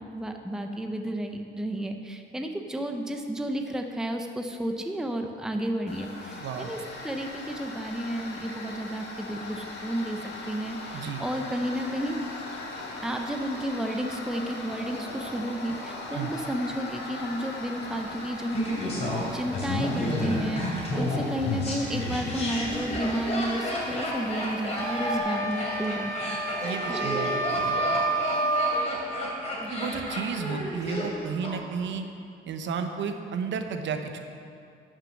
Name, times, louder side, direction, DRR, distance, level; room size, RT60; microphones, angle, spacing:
voice 1, 0.1-12.2 13.0-26.4 26.9-27.2 29.6-30.0, right 1 dB, 5° right, 4 dB, 0.6 m, -32 dB
Tools, 5.9-25.2, left 2 dB, 55° left, 1.8 m, -40 dB
voice 2, 6.4-6.7 10.9-11.2 16.1-16.3 26.6-28.0 29.7-32.1 32.5-34.2, right 6 dB, 65° right, 6 dB, 0.9 m, -33 dB
Laughter, 18.5-31.5 31.8-31.9, left 1 dB, 30° left, 2.8 m, -31 dB
sound 1, 24.7-28.9, right 2 dB, 15° left, 2.1 m, -29 dB
11.5 x 6.5 x 6.4 m, 2.4 s
cardioid pair, 135°, 21 cm